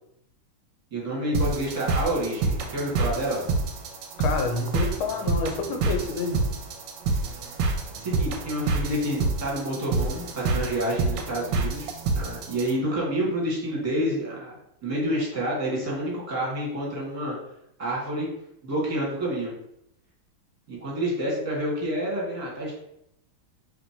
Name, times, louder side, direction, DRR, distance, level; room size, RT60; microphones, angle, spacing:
voice 1, 0.9-3.5 8.0-11.9 12.1-17.3 17.8-18.3 18.6-19.5 20.7-22.8, right 1 dB, 20° right, -4 dB, 1.1 m, -28 dB
sound 1, 1.3-12.7, right 3 dB, 75° right, 1.2 m, -28 dB
voice 2, 4.2-6.6, left 4 dB, 80° left, 4 dB, 1.5 m, -28 dB
3.3 x 2.7 x 4.3 m, 0.79 s
omnidirectional pair, 2.3 m